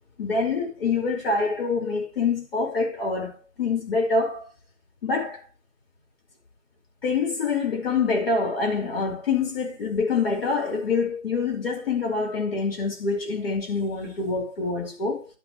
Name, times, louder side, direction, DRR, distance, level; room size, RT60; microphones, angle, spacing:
voice 1, 0.2-4.5 5.0-5.4 7.0-15.3, left 4 dB, 45° left, 4.8 m, -26 dB
11.0 x 10.5 x 3.1 m
hypercardioid pair, 165°, 40 cm